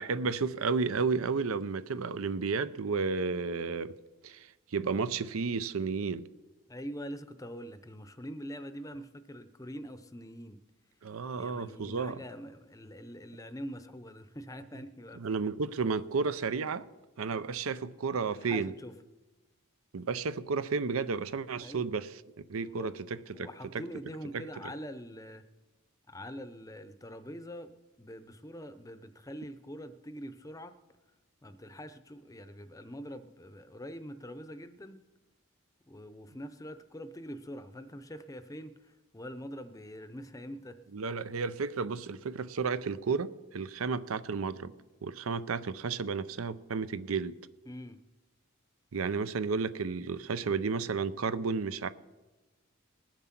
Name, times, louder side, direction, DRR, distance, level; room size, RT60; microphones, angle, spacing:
voice 1, 0.0-4.0 4.2-6.3 11.0-12.2 15.2-16.9 17.2-18.7 19.9-22.1 22.5-23.5 24.3-24.4 40.9-44.7 45.0-47.4 48.9-51.9, right 4 dB, 80° right, 0.6 m, -32 dB
voice 2, 6.7-10.6 11.3-15.4 18.3-18.9 21.6-22.1 22.6-22.9 23.3-25.4 26.1-27.7 28.0-30.7 31.4-35.0 35.9-40.8 47.7-48.0, equal, 15° left, 0.6 m, -44 dB
20.0 x 7.5 x 5.9 m
head